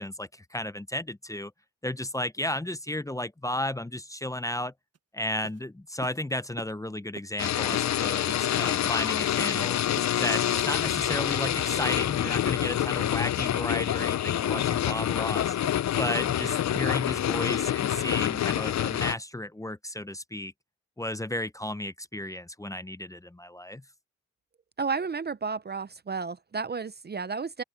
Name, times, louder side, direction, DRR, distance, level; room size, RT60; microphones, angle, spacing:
voice 1, 0.0-1.5 1.8-4.7 5.1-9.8 10.2-15.6 16.0-20.5 21.0-23.8, left 1 dB, 10° left, 0.6 m, -33 dB
sound 1, 4.9-5.0 5.4-5.6 6.0-6.2 6.6-6.7 7.2-7.3 7.7-7.9 8.3-8.5 8.8-9.0 9.4-9.6 10.0-10.1 10.6-10.7 11.1-11.3 11.7-11.9 12.3-12.4 12.8-13.0 13.4-13.6 14.0-14.1 14.6-14.7 15.1-15.2 15.6-15.8 16.2-16.4 16.7-16.9 17.3-17.4, right 7 dB, 55° right, 0.9 m, -44 dB
sound 2, 7.4-19.1, left 11 dB, 65° left, 0.5 m, -27 dB
voice 2, 24.8-27.6, right 5 dB, 35° right, 0.6 m, -32 dB
open air
cardioid pair, 80°, 29 cm